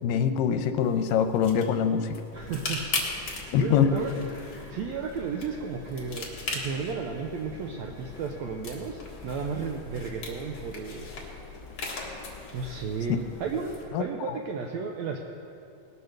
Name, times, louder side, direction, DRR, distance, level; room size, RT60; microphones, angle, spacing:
voice 1, 0.0-2.2 3.5-3.9 13.9-14.4, left 8 dB, 85° left, 8 dB, 2.4 m, -24 dB
sound 1, 0.8-13.8, left 3 dB, 40° left, 1.8 m, -39 dB
Engine, 2.3-13.9, left 4 dB, 55° left, 1.1 m, -46 dB
voice 2, 2.3-2.8 3.1-4.1 4.7-11.1 12.5-15.2, right 5 dB, 85° right, 2 dB, 1.6 m, -34 dB
19.5 x 7.0 x 6.6 m, 2.7 s
omnidirectional pair, 3.9 m